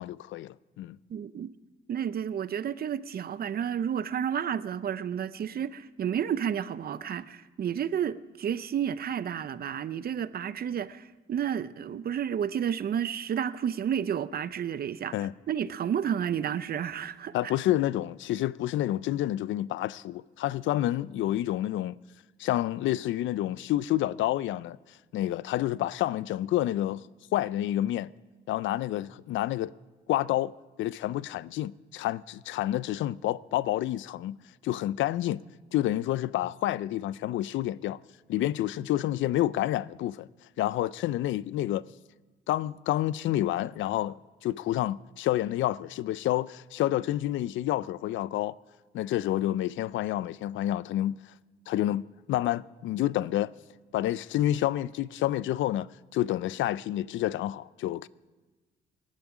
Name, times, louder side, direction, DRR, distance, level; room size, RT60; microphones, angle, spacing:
voice 1, 0.0-1.0 15.1-15.3 17.3-22.0 22.4-24.8 25.1-27.0 27.3-28.1 28.5-29.7 30.1-30.5 30.8-34.4 34.6-35.4 35.7-38.0 38.3-40.3 40.6-41.8 42.5-48.5 48.9-51.2 51.7-53.5 53.9-55.9 56.1-58.1, left 14 dB, 75° left, 0.4 m, -29 dB
voice 2, 1.1-1.5 1.9-15.1 15.5-17.5, right 8 dB, 50° right, 0.6 m, -31 dB
19.0 x 11.5 x 4.9 m
cardioid pair, 90°, 20 cm